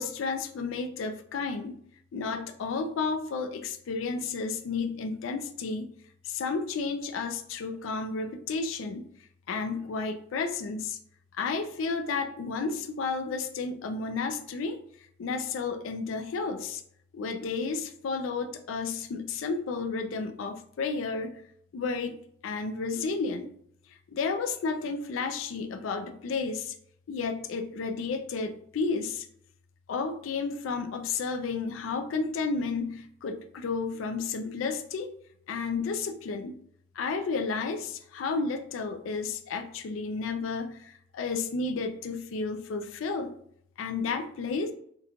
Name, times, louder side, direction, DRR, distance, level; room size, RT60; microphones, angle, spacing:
voice 1, 0.0-1.8 2.1-5.9 6.2-9.0 9.5-11.0 11.3-14.8 15.2-16.8 17.1-21.4 21.7-22.2 22.4-23.5 23.9-26.8 27.1-29.3 29.9-35.1 35.5-36.6 37.0-43.3 43.8-44.7, left 4 dB, 90° left, 9 dB, 0.4 m, -32 dB
2.9 x 2.2 x 3.6 m, 0.66 s
head